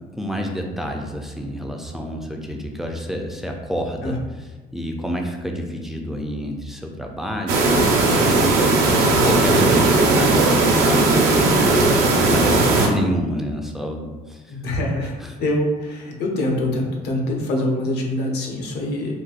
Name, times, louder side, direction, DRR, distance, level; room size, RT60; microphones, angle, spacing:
voice 1, 0.2-4.2 4.7-8.6 9.0-14.6 15.2-15.3, equal, ahead, 2 dB, 0.4 m, -28 dB
sound 1, 7.5-12.9, right 3 dB, 75° right, 0.6 m, -17 dB
voice 2, 9.0-9.5 12.5-12.7 14.5-19.1, left 1 dB, 75° left, 0 dB, 0.7 m, -25 dB
3.9 x 2.3 x 2.4 m, 1.2 s
cardioid pair, 110°, 17 cm